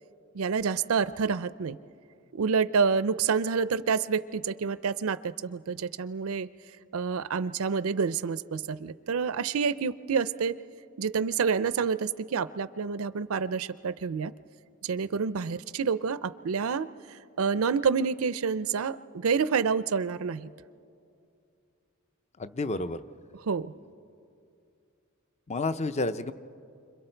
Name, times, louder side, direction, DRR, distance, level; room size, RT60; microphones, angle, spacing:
voice 1, 0.3-1.8 2.3-6.5 6.9-10.6 11.0-14.3 14.8-20.5 23.5-23.7, right 5 dB, 80° right, 15 dB, 0.5 m, -28 dB
voice 2, 22.4-23.0 25.5-26.3, left 2 dB, 30° left, 12 dB, 0.6 m, -30 dB
30.0 x 26.0 x 4.5 m, 2.5 s
head